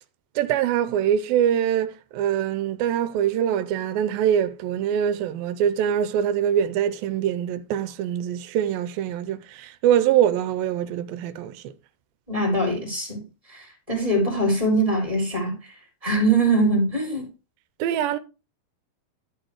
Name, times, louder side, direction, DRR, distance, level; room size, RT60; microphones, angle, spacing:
voice 1, 0.4-11.7 17.8-18.2, right 10 dB, 90° right, 2.5 m, -23 dB
voice 2, 12.3-15.7 16.0-17.3, right 2 dB, 10° right, 3.5 m, -23 dB
12.5 x 4.4 x 4.8 m
omnidirectional pair, 4.2 m